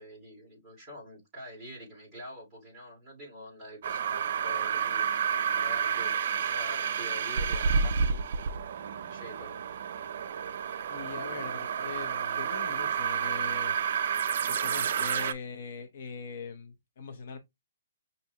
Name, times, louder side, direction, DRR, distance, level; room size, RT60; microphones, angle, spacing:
voice 1, 0.0-8.2 9.0-9.6, equal, 5° right, 2.3 m, -46 dB
sound 1, 3.8-15.3, right 7 dB, 45° right, 0.4 m, -30 dB
voice 2, 10.9-13.7 14.5-17.4, left 5 dB, 45° left, 0.6 m, -41 dB
5.9 x 2.6 x 2.7 m
hypercardioid pair, 175°, 0 cm